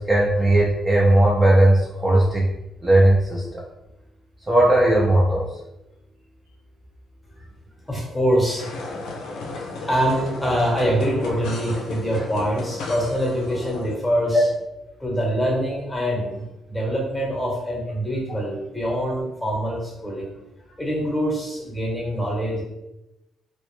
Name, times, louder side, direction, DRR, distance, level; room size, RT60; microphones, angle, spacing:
voice 1, 0.0-2.5 2.8-3.6 4.5-5.5 14.3-14.4, right 1 dB, 15° right, -5 dB, 0.5 m, -17 dB
voice 2, 7.9-8.7 9.5-14.4 15.0-20.3 20.8-22.6, equal, 5° left, -2 dB, 0.9 m, -24 dB
sound 1, 8.6-14.0, left 3 dB, 80° left, 0.4 m, -33 dB
2.1 x 2.0 x 3.1 m, 0.92 s
cardioid pair, 90°, 0 cm